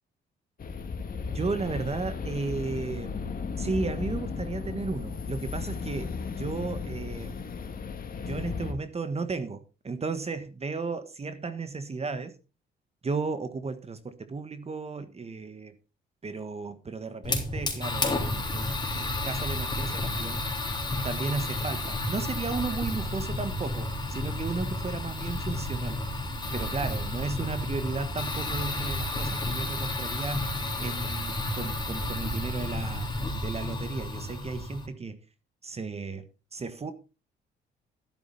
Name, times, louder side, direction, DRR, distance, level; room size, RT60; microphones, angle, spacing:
sound 1, 0.6-8.7, left 5 dB, 45° left, 2.1 m, -35 dB
voice 1, 1.3-3.1 3.6-7.4 8.2-12.3 13.0-15.7 16.2-20.4 21.0-26.0 26.5-35.2 35.6-36.3 36.5-36.9, right 4 dB, 30° right, 1.4 m, -34 dB
Fire, 17.2-34.9, left 1 dB, 20° left, 3.6 m, -31 dB
12.0 x 11.5 x 4.1 m
cardioid pair, 90°, 20 cm